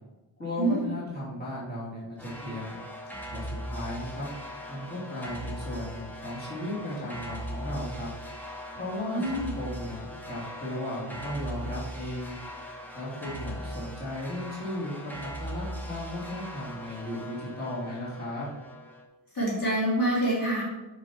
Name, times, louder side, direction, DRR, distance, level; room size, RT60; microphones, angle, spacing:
voice 1, 0.4-2.8 3.3-4.3 4.7-8.1 8.7-12.3 12.9-18.5, left 1 dB, 20° left, -7 dB, 2.6 m, -36 dB
sound 1, 2.2-19.0, equal, 5° left, 0.9 m, -40 dB
voice 2, 9.0-9.5 19.3-20.6, right 1 dB, 45° left, -6 dB, 2.4 m, -26 dB
6.8 x 5.7 x 4.4 m, 1.1 s
wide cardioid pair, 175°, 47 cm